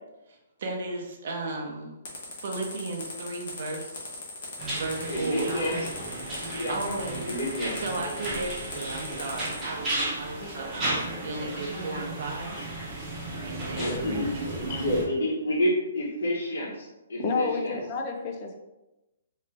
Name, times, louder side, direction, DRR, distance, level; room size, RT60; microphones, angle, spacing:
voice 1, 0.3-2.0 2.4-4.1 4.7-5.6 6.3-7.3 7.8-12.5 13.4-14.9, right 3 dB, 45° right, 0 dB, 0.8 m, -35 dB
sound 1, 2.1-9.6, left 3 dB, 45° left, 1.2 m, -39 dB
sound 2, 4.6-15.0, right 1 dB, 5° right, 1.0 m, -34 dB
voice 2, 5.1-6.2 6.5-7.8 13.3-17.8, left 1 dB, 75° left, -10 dB, 1.4 m, -30 dB
voice 3, 17.2-18.6, left 4 dB, 25° left, 3 dB, 0.4 m, -30 dB
3.5 x 3.2 x 3.3 m, 1.0 s
hypercardioid pair, 175°, 0 cm